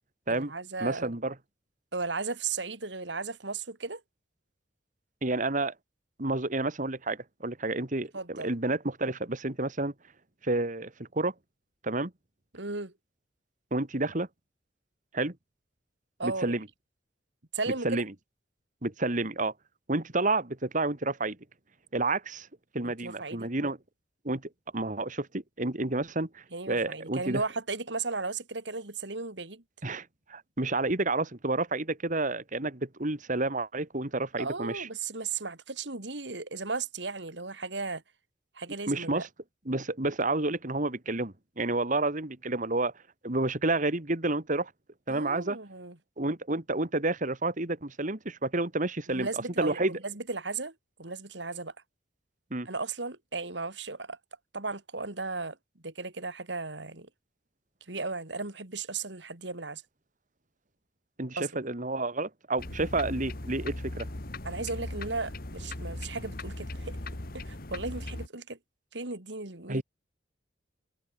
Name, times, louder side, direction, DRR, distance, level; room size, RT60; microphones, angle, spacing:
voice 1, 0.3-1.1 1.9-4.0 8.1-8.5 12.5-12.9 16.2-16.6 17.5-18.0 22.8-23.5 26.5-29.6 34.4-38.0 38.5-39.2 45.1-46.0 49.1-50.7 51.0-51.7 52.6-54.2 54.5-55.6 55.8-57.1 57.9-59.8 61.4-61.5 64.4-67.0 67.3-68.6 68.9-69.8, right 3 dB, 70° right, 2.9 m, -35 dB
voice 2, 0.8-1.3 5.2-5.7 6.2-9.9 10.4-11.3 11.8-12.1 13.7-14.3 15.1-15.4 16.2-16.7 17.8-18.1 18.8-19.5 19.9-21.4 21.9-22.5 22.7-23.8 24.2-24.4 24.7-27.4 29.8-34.9 38.9-39.3 39.7-42.9 43.2-44.7 45.1-45.6 46.2-49.9 52.5-52.7 61.2-64.1 69.7-69.8, right 2 dB, 45° right, 2.2 m, -30 dB
sound 1, 62.6-68.3, left 1 dB, 55° left, 2.0 m, -38 dB
head